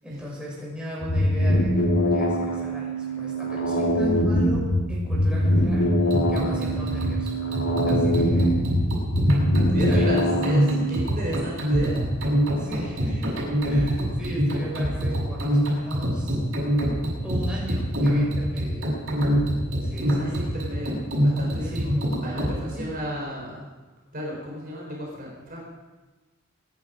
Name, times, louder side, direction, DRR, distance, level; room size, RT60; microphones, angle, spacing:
voice 1, 0.0-5.9 6.3-8.7 9.9-10.1 12.5-16.4 17.2-18.9 19.8-20.6 21.6-22.0 22.7-23.0, equal, 5° right, -5 dB, 6.3 m, -37 dB
sound 1, 1.0-11.0, equal, 70° left, 2.2 m, -23 dB
sound 2, 6.0-22.6, equal, 70° right, 7.3 m, -24 dB
voice 2, 9.6-12.0 19.9-21.0 21.2-21.9 22.2-23.7 24.1-25.7, equal, 45° right, -3 dB, 4.2 m, -33 dB
25.5 x 11.0 x 5.2 m, 1.2 s
head